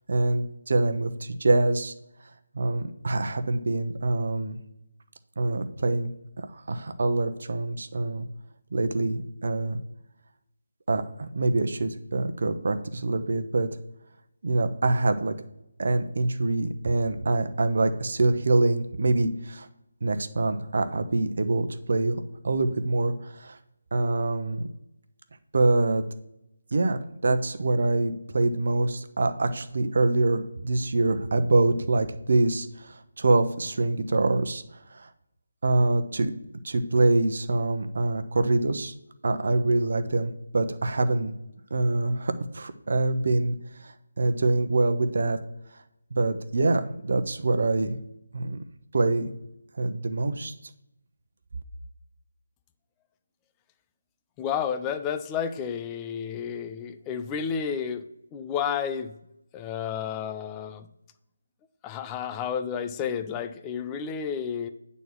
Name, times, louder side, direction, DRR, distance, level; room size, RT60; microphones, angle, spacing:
voice 1, 0.1-1.9 2.5-4.6 5.4-6.1 6.4-8.2 8.7-9.8 10.9-13.7 14.4-15.3 15.8-19.7 20.0-23.6 23.9-24.6 25.5-26.0 26.7-34.6 34.9-35.1 35.6-36.3 36.6-38.9 39.2-41.3 41.7-45.4 46.1-48.0 48.3-48.6 48.9-49.3 49.8-50.5, right 2 dB, 55° right, 9 dB, 1.0 m, -25 dB
voice 2, 54.4-58.1 58.3-59.1 59.5-60.9 61.8-64.7, left 7 dB, 15° left, 9 dB, 0.5 m, -31 dB
9.2 x 4.1 x 7.3 m, 0.86 s
figure-of-eight pair, 155°, 0 cm